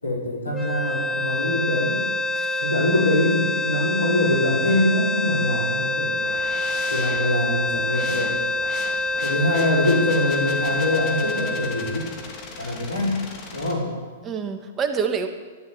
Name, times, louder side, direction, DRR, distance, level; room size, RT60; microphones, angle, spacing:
voice 1, 0.0-2.0 2.6-6.4 6.9-8.4 9.2-12.1 12.6-13.2 13.5-13.9, left 1 dB, 85° left, -2 dB, 5.2 m, -23 dB
sound 1, 0.5-12.8, left 2 dB, 5° left, 1.3 m, -26 dB
voice 2, 2.3-2.7 12.6-12.7 14.2-15.3, right 6 dB, 25° right, 6 dB, 1.5 m, -27 dB
sound 2, 6.2-13.7, left 4 dB, 35° left, 2.8 m, -39 dB
12.5 x 12.0 x 8.0 m, 1.4 s
figure-of-eight pair, 110°, 0 cm